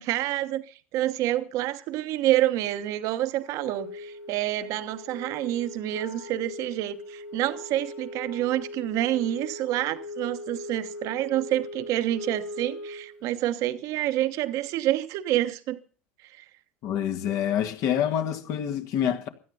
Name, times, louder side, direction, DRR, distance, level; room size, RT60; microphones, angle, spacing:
voice 1, 0.0-15.8 16.3-16.4, right 14 dB, 55° right, 1.1 m, -28 dB
Wind instrument woodwind instrument, 3.5-13.2, left 1 dB, 75° left, 2.3 m, -40 dB
voice 2, 16.8-19.3, left 9 dB, 55° left, 2.0 m, -27 dB
16.5 x 12.0 x 5.6 m
hypercardioid pair, 75°, 7 cm